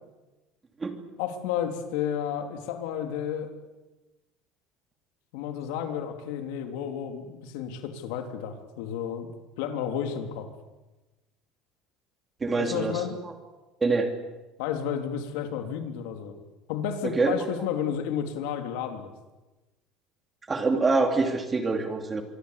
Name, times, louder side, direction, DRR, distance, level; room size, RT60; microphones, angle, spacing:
voice 1, 1.2-3.5 5.3-9.3 9.6-10.5 12.6-13.2 14.6-16.3 16.7-19.1, left 8 dB, 85° left, 6 dB, 3.7 m, -31 dB
voice 2, 12.4-13.3 13.8-14.1 17.0-17.3 20.5-22.2, right 3 dB, 15° right, 6 dB, 3.0 m, -25 dB
25.0 x 24.0 x 8.5 m, 1.1 s
cardioid pair, 155°, 0 cm